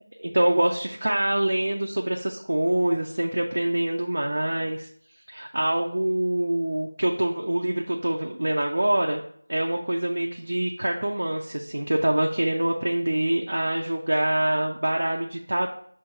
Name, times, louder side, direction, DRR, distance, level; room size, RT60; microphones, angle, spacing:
voice 1, 0.2-4.9 5.3-9.2 9.5-15.7, right 1 dB, 60° right, 0 dB, 0.7 m, -25 dB
6.3 x 3.0 x 5.7 m, 0.63 s
figure-of-eight pair, 175°, 0 cm